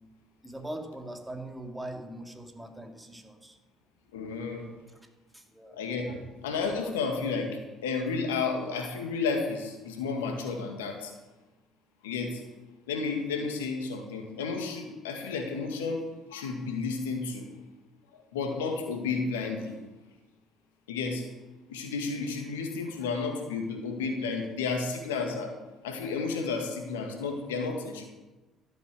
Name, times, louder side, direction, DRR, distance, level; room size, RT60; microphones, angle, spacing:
voice 1, 0.4-3.6 4.9-5.0 5.3-5.8, right 1 dB, 10° right, 3 dB, 2.5 m, -41 dB
voice 2, 4.1-4.6 5.7-11.1 12.0-12.4 12.9-16.0 16.3-17.5 18.3-19.8 20.9-21.3 21.7-25.5 25.8-28.1, left 4 dB, 85° left, 3 dB, 2.0 m, -32 dB
13.0 x 7.9 x 7.7 m, 1.2 s
hypercardioid pair, 55°, 0 cm